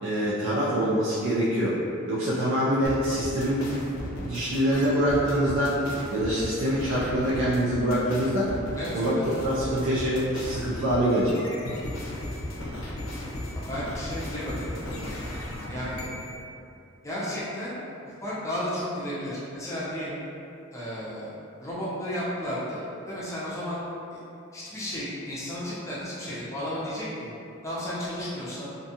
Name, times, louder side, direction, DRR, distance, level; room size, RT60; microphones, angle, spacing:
voice 1, 0.0-1.8 2.1-3.6 4.2-5.8 6.1-8.5 8.9-9.2 9.4-11.4, equal, 70° right, -8 dB, 0.4 m, -25 dB
sound 1, 2.8-16.4, left 1 dB, 85° left, 0.5 m, -36 dB
voice 2, 8.8-9.3 13.5-15.1 15.7-16.1 17.0-17.8 18.2-20.2 20.7-21.3 21.6-23.8 24.1-24.2 24.5-27.3 27.6-28.7, equal, 15° left, -9 dB, 0.5 m, -33 dB
2.5 x 2.3 x 2.7 m, 2.6 s
head